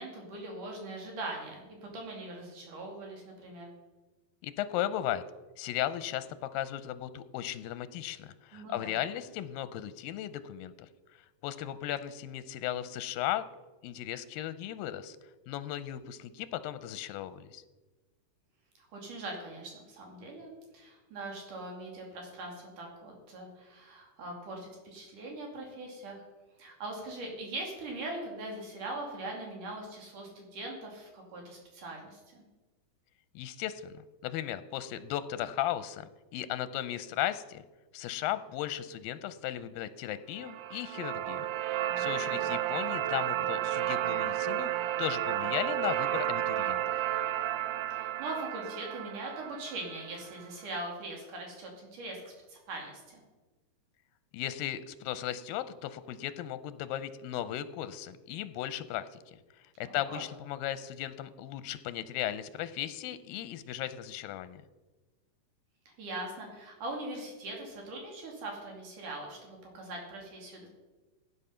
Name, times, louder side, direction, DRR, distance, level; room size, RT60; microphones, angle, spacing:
voice 1, 0.0-3.7 8.5-9.0 18.8-26.2 26.6-32.4 41.8-42.5 47.9-52.2 52.5-53.2 59.9-60.2 66.0-70.7, right 2 dB, 65° right, 0 dB, 4.0 m, -41 dB
voice 2, 4.4-5.2 5.6-6.3 6.5-10.9 11.4-13.5 13.8-15.2 15.5-17.6 33.4-33.9 34.2-37.6 37.9-41.5 41.8-44.7 45.0-46.8 54.3-59.4 59.8-64.6, left 12 dB, 90° left, 13 dB, 2.4 m, -36 dB
sound 1, 40.4-50.4, right 12 dB, 80° right, 2.0 m, -32 dB
16.0 x 9.1 x 5.7 m, 1.2 s
omnidirectional pair, 4.0 m